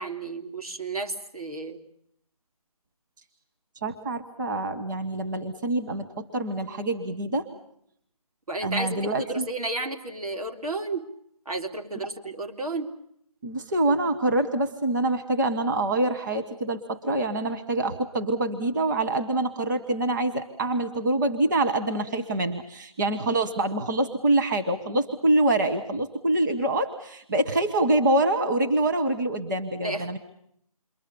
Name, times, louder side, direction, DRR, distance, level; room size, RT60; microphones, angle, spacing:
voice 1, 0.0-1.8 8.5-11.1 11.5-12.9 29.8-30.2, right 2 dB, 75° right, 5 dB, 3.7 m, -32 dB
voice 2, 3.8-7.5 8.6-9.5 13.4-30.2, right 2 dB, 30° right, 6 dB, 1.6 m, -25 dB
29.0 x 23.0 x 7.1 m, 0.70 s
figure-of-eight pair, 165°, 19 cm